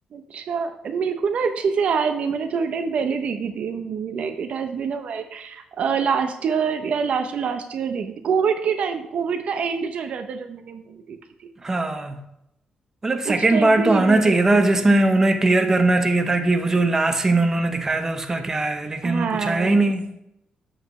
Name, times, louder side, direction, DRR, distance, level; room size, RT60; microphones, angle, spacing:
voice 1, 0.1-11.2 13.3-15.0 19.0-19.8, right 6 dB, 60° right, 0.7 m, -26 dB
voice 2, 11.6-12.2 13.0-20.1, right 2 dB, 20° right, 0.9 m, -20 dB
8.1 x 7.5 x 3.2 m
cardioid pair, 120°, 2 cm